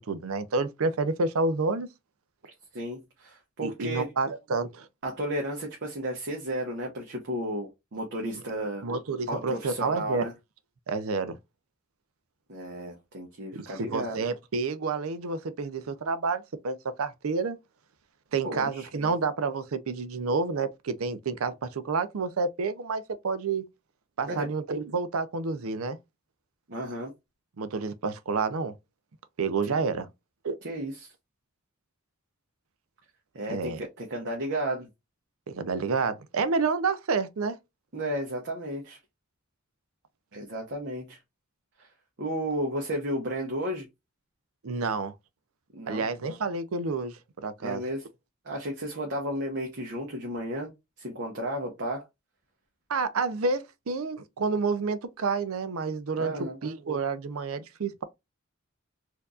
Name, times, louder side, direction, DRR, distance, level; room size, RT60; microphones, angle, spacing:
voice 1, 0.1-1.9 3.6-4.9 8.8-10.3 10.9-11.4 13.5-17.6 18.3-23.6 24.2-26.0 27.6-28.7 29.4-30.1 30.4-30.6 33.5-33.8 35.5-37.6 44.6-45.1 45.9-47.8 52.9-56.3 56.6-58.0, right 4 dB, 80° right, 0.6 m, -29 dB
voice 2, 2.7-4.1 5.0-8.8 9.3-10.3 12.5-14.2 18.4-18.9 24.3-24.5 26.7-27.1 29.7-29.8 30.6-31.1 33.3-34.9 37.9-39.0 40.3-41.2 41.8-41.9 42.2-43.9 45.7-46.0 47.6-48.1 48.4-50.7 51.0-52.0 56.2-56.6, right 1 dB, 55° right, 1.0 m, -33 dB
4.4 x 2.6 x 2.3 m
head